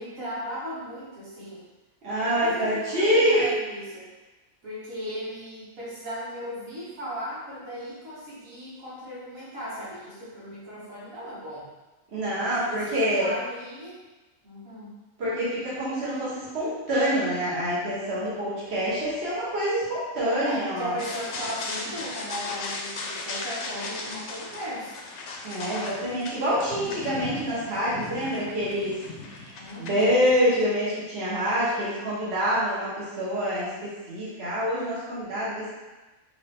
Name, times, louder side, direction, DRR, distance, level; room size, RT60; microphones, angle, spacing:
voice 1, 0.0-1.6 2.1-4.1 4.6-11.7 12.3-14.0 14.4-15.0 20.4-24.9 29.6-30.2, equal, 75° right, -9 dB, 1.7 m, -37 dB
voice 2, 2.0-3.4 12.1-13.3 15.2-21.0 25.4-28.9 29.3-35.7, equal, 50° right, -9 dB, 1.5 m, -26 dB
sound 1, 21.0-30.6, left 3 dB, 65° left, 0.9 m, -37 dB
4.7 x 2.8 x 3.5 m, 1.1 s
omnidirectional pair, 1.4 m